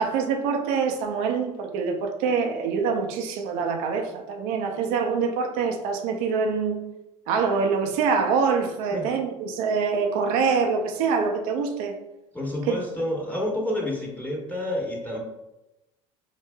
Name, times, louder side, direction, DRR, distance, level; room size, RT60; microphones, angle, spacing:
voice 1, 0.0-6.8 7.3-11.9 12.7-12.8, right 5 dB, 70° right, 0.6 m, -25 dB
voice 2, 12.3-15.2, left 1 dB, 10° left, 1.2 m, -29 dB
4.9 x 2.6 x 2.2 m
hypercardioid pair, 75°, 15 cm